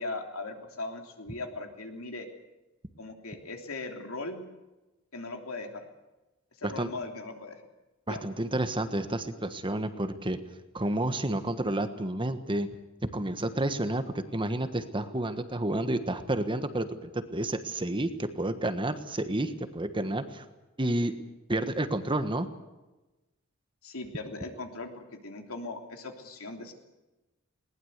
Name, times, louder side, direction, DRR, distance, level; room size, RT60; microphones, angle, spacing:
voice 1, 0.0-2.3 3.0-4.4 5.1-5.9 6.6-7.6 8.1-8.3 23.8-26.7, left 2 dB, 70° left, 4 dB, 3.3 m, -39 dB
voice 2, 8.1-10.4 10.7-12.7 13.1-20.4 20.8-21.1 21.5-22.5, right 1 dB, 25° right, 9 dB, 1.4 m, -30 dB
21.0 x 19.5 x 8.2 m, 1.1 s
head